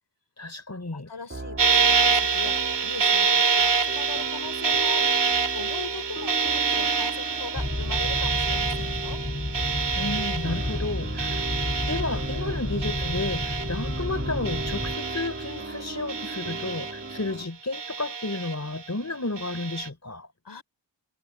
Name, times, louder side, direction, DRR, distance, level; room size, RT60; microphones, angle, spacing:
voice 1, 0.4-1.1 10.0-11.4 11.8-20.3, left 2 dB, 35° left, 5.3 m, -32 dB
voice 2, 0.9-2.6 2.8-5.2 5.5-9.2 20.4-20.6, left 5 dB, 65° left, 5.0 m, -40 dB
sound 1, 1.3-17.5, right 2 dB, 30° right, 2.7 m, -38 dB
sound 2, 1.6-14.2 14.5-15.7 16.1-17.3 17.7-18.8 19.4-19.9, right 5 dB, 70° right, 2.1 m, -26 dB
sound 3, 7.5-15.0, left 1 dB, 20° left, 1.7 m, -31 dB
cardioid pair, 45°, 44 cm